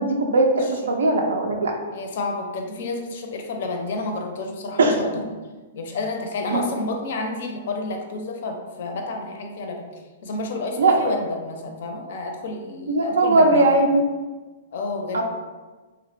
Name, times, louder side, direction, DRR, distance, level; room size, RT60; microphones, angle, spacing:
voice 1, 0.0-1.7 4.8-5.0 6.5-6.6 10.8-10.9 12.9-14.0 15.1-15.2, right 2 dB, 85° right, 1 dB, 0.3 m, -19 dB
voice 2, 1.9-5.2 5.7-13.8 14.7-15.2, left 2 dB, 65° left, 3 dB, 0.4 m, -30 dB
2.7 x 2.1 x 2.5 m, 1.3 s
hypercardioid pair, 140°, 0 cm